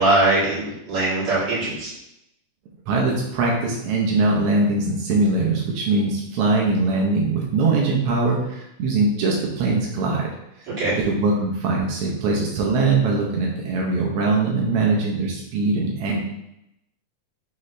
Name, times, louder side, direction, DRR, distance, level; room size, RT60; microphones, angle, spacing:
voice 1, 0.0-1.9 10.7-11.0, right 2 dB, 50° right, -9 dB, 2.6 m, -21 dB
voice 2, 2.9-10.3 11.0-16.2, right 3 dB, 80° right, -2 dB, 1.3 m, -21 dB
6.1 x 3.1 x 2.6 m, 0.83 s
omnidirectional pair, 3.6 m